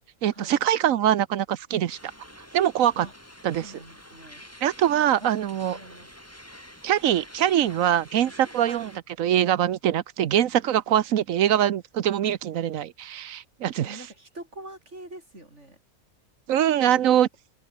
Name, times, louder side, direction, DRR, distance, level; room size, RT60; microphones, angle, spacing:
voice 1, 0.2-2.0 2.5-3.1 3.4-3.7 4.6-5.8 6.8-8.9 9.2-14.1 16.5-17.3, right 11 dB, 75° right, 1.2 m, -23 dB
sound 1, 1.9-9.0, equal, 10° left, 5.6 m, -47 dB
voice 2, 3.6-4.4 5.2-5.3 5.6-6.1 8.7-8.9 13.8-15.8 16.8-17.0, right 1 dB, 55° right, 8.0 m, -44 dB
omnidirectional pair, 1.4 m